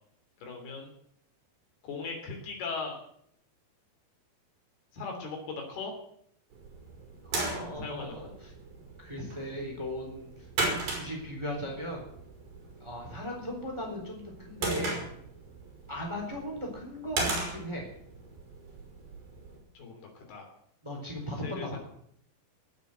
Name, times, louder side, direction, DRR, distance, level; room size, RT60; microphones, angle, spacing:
voice 1, 0.4-0.9 1.8-3.0 4.9-5.9 7.8-8.4 19.7-20.5 21.4-21.8, left 4 dB, 70° left, 2 dB, 5.1 m, -38 dB
sound 1, 6.5-19.6, right 3 dB, 65° right, 6.6 m, -38 dB
voice 2, 7.2-8.3 9.0-10.3 10.9-12.1 12.8-15.0 15.9-17.9 20.8-21.8, left 1 dB, 5° right, 0 dB, 3.5 m, -37 dB
18.0 x 8.2 x 8.0 m, 0.69 s
omnidirectional pair, 4.7 m